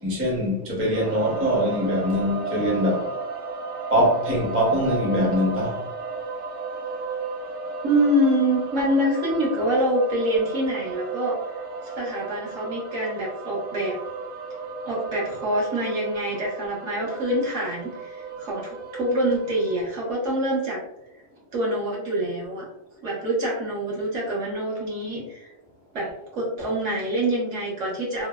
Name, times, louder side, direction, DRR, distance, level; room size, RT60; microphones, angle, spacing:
voice 1, 0.0-3.1 3.9-5.8, equal, 15° right, 0.5 m, -23 dB
sound 1, 0.9-19.9, right 4 dB, 50° right, 0.7 m, -34 dB
voice 2, 7.8-11.4 11.8-14.0 14.8-20.8 21.5-22.7 23.0-25.5 25.9-28.3, right 1 dB, 70° right, 1.3 m, -25 dB
3.1 x 2.0 x 2.3 m
omnidirectional pair, 1.3 m